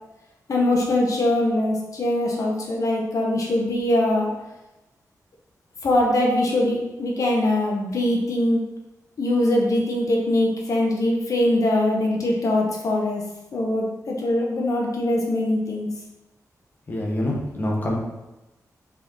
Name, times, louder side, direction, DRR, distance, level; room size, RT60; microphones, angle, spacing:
voice 1, 0.5-4.3 5.8-8.6 9.2-13.2 13.5-15.9, left 1 dB, 60° left, -1 dB, 1.4 m, -22 dB
voice 2, 16.9-18.0, left 1 dB, 30° left, -2 dB, 1.6 m, -25 dB
6.5 x 5.0 x 5.7 m, 1.0 s
wide cardioid pair, 175°, 6 cm